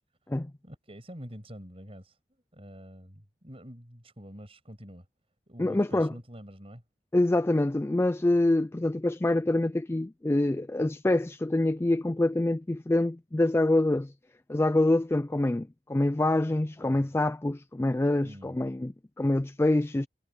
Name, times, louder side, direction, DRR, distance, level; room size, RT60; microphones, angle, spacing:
voice 1, 0.6-2.2 2.5-5.1 5.5-6.8 18.2-18.6, equal, 35° right, 7.9 m, -46 dB
voice 2, 5.6-6.1 7.1-14.1 14.5-20.1, left 1 dB, 15° left, 0.4 m, -26 dB
head